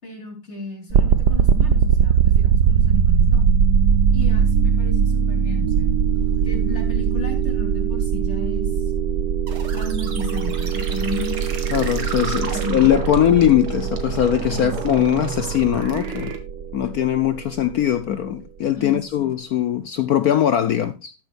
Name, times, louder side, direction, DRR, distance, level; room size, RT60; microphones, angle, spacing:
voice 1, 0.0-3.5 4.1-6.0 6.4-8.7 9.7-11.6 12.5-12.8 14.5-15.1 18.7-19.3, left 2 dB, 30° left, 3.8 m, -33 dB
sound 1, 0.9-17.8, right 7 dB, 60° right, 1.4 m, -21 dB
sound 2, 9.5-16.4, right 5 dB, 85° right, 2.6 m, -33 dB
voice 2, 11.7-16.4 16.7-21.1, left 11 dB, 65° left, 0.9 m, -20 dB
13.5 x 10.5 x 2.5 m
omnidirectional pair, 2.2 m